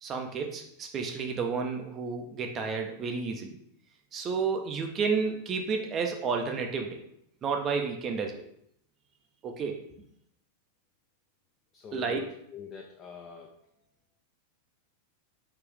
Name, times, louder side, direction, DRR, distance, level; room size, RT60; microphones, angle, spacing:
voice 1, 0.0-3.6 4.1-7.0 7.4-8.4 9.4-9.8 11.9-12.2, right 5 dB, 30° right, 3 dB, 0.5 m, -31 dB
voice 2, 11.7-13.5, left 7 dB, 30° left, 1 dB, 0.4 m, -43 dB
3.8 x 2.4 x 3.2 m, 0.70 s
figure-of-eight pair, 90°, 0 cm